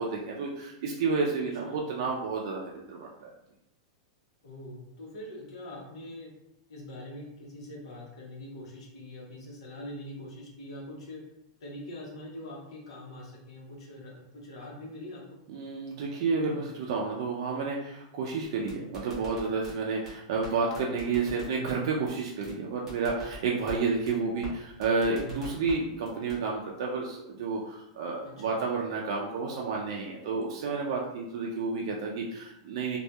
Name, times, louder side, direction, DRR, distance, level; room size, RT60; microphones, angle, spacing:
voice 1, 0.0-3.3 15.5-33.0, right 4 dB, 60° right, -2 dB, 0.4 m, -31 dB
voice 2, 1.4-1.8 4.4-6.3 6.7-11.2 11.6-15.2 28.2-28.6, left 1 dB, 80° left, -2 dB, 0.9 m, -43 dB
sound 1, 18.4-19.7 20.1-20.2 20.4-20.5 20.7-21.7 22.1-22.2 22.4-22.5 22.9-23.8 24.1-24.2 24.4-24.5 24.8-25.7 26.1-26.4, left 1 dB, 10° right, 1.0 m, -43 dB
2.7 x 2.2 x 2.2 m, 0.83 s
supercardioid pair, 160°, 3 cm